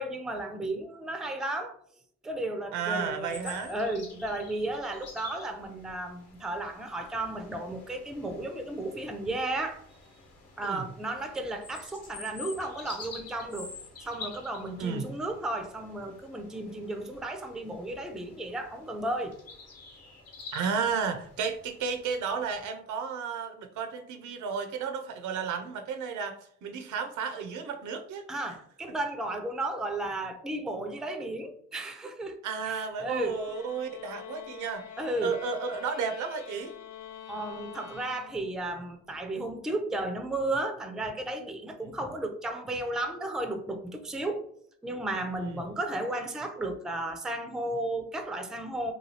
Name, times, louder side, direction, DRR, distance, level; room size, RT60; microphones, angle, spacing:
voice 1, 0.0-1.8 2.2-9.8 10.6-13.7 14.0-19.4 28.3-32.4 32.6-33.4 35.0-35.3 37.3-44.4 44.8-48.9, right 1 dB, ahead, 0.3 m, -34 dB
voice 2, 2.7-3.7 10.6-10.8 14.8-15.0 20.5-28.3 32.4-34.9 35.2-36.7 45.4-45.6, right 6 dB, 75° right, 0.5 m, -33 dB
sound 1, 3.3-22.7, left 4 dB, 55° left, 1.0 m, -48 dB
sound 2, 33.1-38.8, left 9 dB, 70° left, 0.5 m, -46 dB
3.1 x 2.3 x 2.7 m
cardioid pair, 90°, 30 cm